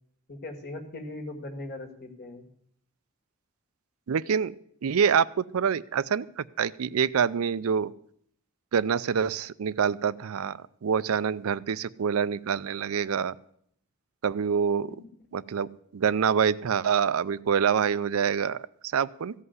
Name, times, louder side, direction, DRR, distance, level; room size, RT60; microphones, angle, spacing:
voice 1, 0.3-2.5 14.9-15.0, left 2 dB, 50° left, 5 dB, 2.0 m, -39 dB
voice 2, 4.1-4.5 4.8-7.9 8.7-13.4 14.2-14.9 15.3-19.3, right 7 dB, 80° right, 16 dB, 0.4 m, -26 dB
15.0 x 5.6 x 9.4 m, 0.68 s
head